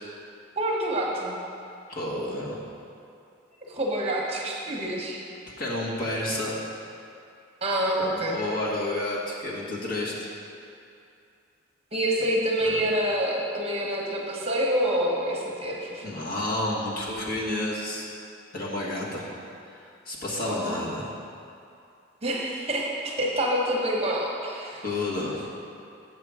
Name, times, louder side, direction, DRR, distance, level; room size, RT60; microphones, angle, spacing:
voice 1, 0.6-1.4 3.6-5.2 7.6-8.4 11.9-16.1 20.4-20.8 22.2-24.8, right 1 dB, 30° right, -2 dB, 1.0 m, -27 dB
voice 2, 1.9-2.6 5.6-6.6 8.0-10.3 12.6-12.8 16.0-18.1 18.5-19.3 19.7-21.1 24.8-25.5, left 1 dB, 50° left, -5 dB, 1.5 m, -30 dB
7.9 x 6.6 x 4.8 m, 2.6 s
head